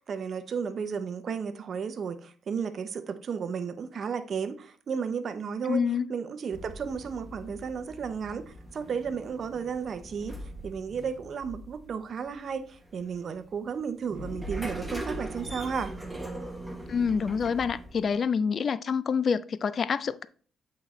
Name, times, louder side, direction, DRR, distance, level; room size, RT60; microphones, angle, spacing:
voice 1, 0.0-5.8 6.1-10.4 10.6-15.9, right 6 dB, 55° right, 0.6 m, -33 dB
voice 2, 5.7-6.1 16.9-20.3, left 6 dB, 50° left, 0.4 m, -27 dB
sound 1, 6.5-18.2, right 1 dB, 10° right, 1.1 m, -41 dB
8.5 x 4.1 x 3.1 m
cardioid pair, 90°, 0 cm